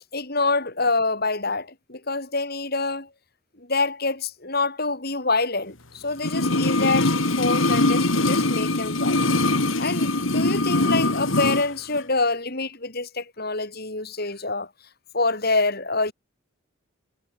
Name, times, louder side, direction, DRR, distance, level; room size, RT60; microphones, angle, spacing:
voice 1, 0.1-3.1 3.6-9.2 9.8-14.7 15.1-16.1, left 3 dB, 50° left, 5.5 m, -26 dB
sound 1, 6.2-11.7 11.9-12.0, left 2 dB, 75° left, 3.0 m, -22 dB
head